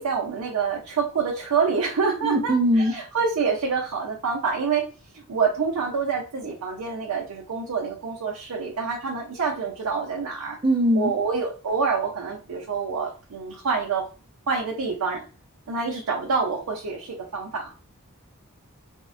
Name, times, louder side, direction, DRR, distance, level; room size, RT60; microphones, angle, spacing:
voice 1, 0.0-4.9 5.1-10.6 10.9-14.1 14.5-15.2 15.7-17.7, right 5 dB, 85° right, 0.6 m, -27 dB
voice 2, 2.2-2.9 10.6-11.1, equal, 25° right, 0.4 m, -21 dB
3.5 x 2.0 x 2.4 m
head